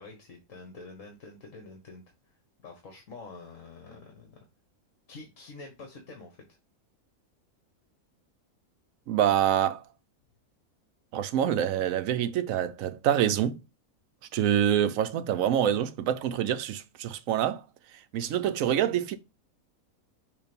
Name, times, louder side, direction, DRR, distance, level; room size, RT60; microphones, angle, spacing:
voice 1, 0.0-2.0 2.6-4.4 5.1-6.4, left 3 dB, 60° left, 1.6 m, -46 dB
voice 2, 9.1-9.8 11.1-13.6 14.3-17.6 18.1-19.2, right 10 dB, 70° right, 1.0 m, -26 dB
6.7 x 2.7 x 5.2 m
omnidirectional pair, 1.5 m